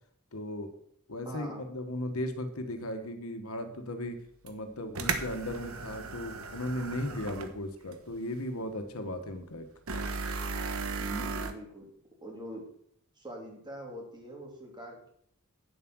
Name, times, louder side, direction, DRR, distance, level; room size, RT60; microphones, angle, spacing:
voice 1, 0.3-0.7 1.1-4.2 4.4-9.7, left 1 dB, 85° left, 7 dB, 1.5 m, -36 dB
voice 2, 1.2-1.7 11.0-11.9 12.2-12.7 13.2-15.1, equal, 20° right, -1 dB, 3.2 m, -43 dB
sound 1, 4.5-4.6 4.9-7.6 7.9-8.0 9.9-11.5, right 4 dB, 80° right, 1.2 m, -35 dB
9.4 x 7.7 x 6.2 m, 0.67 s
head